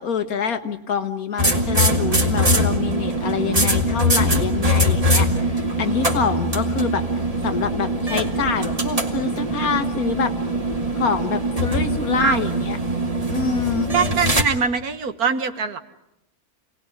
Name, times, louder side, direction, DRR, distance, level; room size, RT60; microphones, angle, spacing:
voice 1, 0.0-7.0 7.4-10.3 11.0-12.8 13.3-13.9, left 6 dB, 75° left, 8 dB, 1.8 m, -26 dB
sound 1, 1.4-14.4, equal, 25° right, 2.3 m, -22 dB
voice 2, 5.9-6.3 12.2-12.4 13.9-15.8, right 5 dB, 80° right, 9 dB, 1.9 m, -23 dB
27.5 x 19.0 x 9.8 m, 0.86 s
omnidirectional pair, 1.6 m